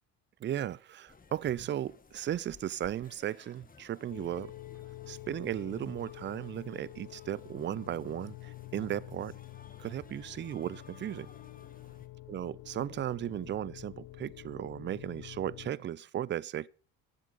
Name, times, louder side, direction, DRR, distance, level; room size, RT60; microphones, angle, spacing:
voice 1, 0.4-4.5 5.1-9.3 9.8-11.3 12.3-16.7, right 11 dB, 30° right, 0.4 m, -36 dB
sound 1, 1.1-12.1, left 4 dB, 20° left, 1.6 m, -58 dB
sound 2, 4.1-15.7, left 17 dB, 60° left, 0.7 m, -48 dB
12.0 x 7.4 x 6.8 m
hypercardioid pair, 70°, 42 cm